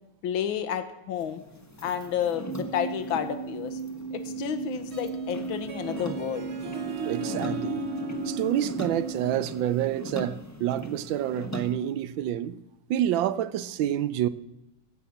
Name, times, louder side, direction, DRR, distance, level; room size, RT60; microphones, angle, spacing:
voice 1, 0.2-1.4 1.8-3.8 4.1-6.5, left 9 dB, 80° left, 1.8 m, -31 dB
sound 1, 1.1-11.7, equal, 15° left, 0.7 m, -41 dB
sound 2, 2.4-9.3, right 5 dB, 50° left, 1.7 m, -36 dB
Harp, 4.8-10.3, right 2 dB, 45° right, 1.0 m, -37 dB
voice 2, 7.0-7.9 8.3-12.6 12.9-14.3, right 11 dB, 75° right, 1.3 m, -28 dB
15.5 x 5.7 x 7.7 m
omnidirectional pair, 2.2 m